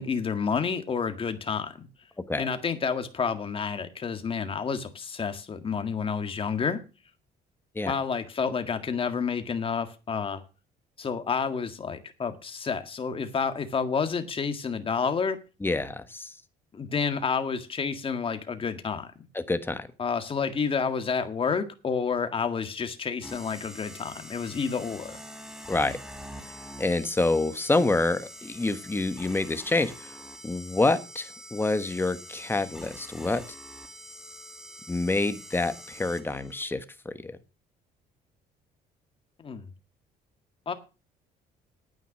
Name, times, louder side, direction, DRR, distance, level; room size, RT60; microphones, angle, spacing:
voice 1, 0.0-1.9 2.4-6.8 7.8-10.4 11.0-15.4 16.7-19.1 20.0-25.2 39.4-39.7 40.6-40.7, left 5 dB, 30° left, 8 dB, 1.8 m, -29 dB
voice 2, 15.6-16.3 19.3-19.9 25.7-26.0 26.8-30.1 30.4-33.4 34.9-37.4, left 2 dB, 15° left, 11 dB, 1.3 m, -27 dB
sound 1, 23.2-36.6, equal, 5° right, 1.9 m, -45 dB
9.4 x 9.3 x 6.3 m, 0.32 s
cardioid pair, 110°, 17 cm